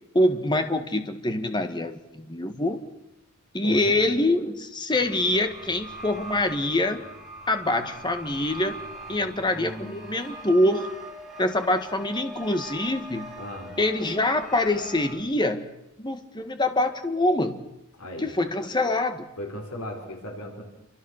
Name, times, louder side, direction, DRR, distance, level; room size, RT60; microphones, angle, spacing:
voice 1, 0.1-2.8 3.5-7.0 7.5-8.8 9.1-10.9 11.4-13.3 13.8-15.7 16.0-17.6 18.2-19.3, left 1 dB, 20° left, 7 dB, 1.7 m, -25 dB
voice 2, 3.6-4.0 9.1-10.1 13.4-13.8 18.0-18.3 19.4-20.6, left 1 dB, 80° left, 2 dB, 5.1 m, -38 dB
sound 1, 4.9-15.1, right 2 dB, ahead, 5.7 m, -42 dB
28.0 x 24.5 x 6.6 m, 0.89 s
head